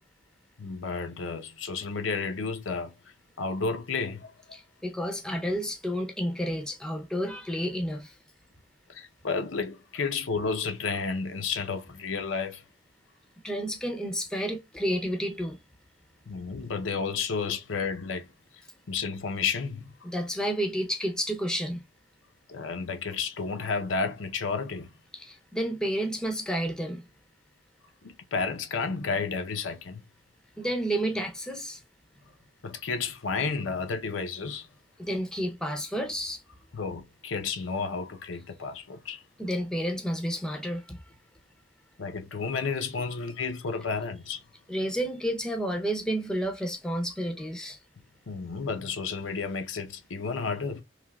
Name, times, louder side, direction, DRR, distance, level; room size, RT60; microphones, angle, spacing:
voice 1, 0.6-3.0 3.4-4.3 8.9-12.6 16.3-18.3 18.9-19.9 22.5-24.9 28.0-30.0 32.6-34.7 36.7-39.2 42.0-44.4 48.3-50.8, left 5 dB, 90° left, 0.6 m, -31 dB
voice 2, 4.5-8.1 13.4-15.6 20.0-21.8 25.1-27.0 30.6-31.8 35.0-36.4 39.4-41.0 44.7-47.8, equal, 5° left, 0.5 m, -30 dB
3.3 x 2.8 x 2.2 m
head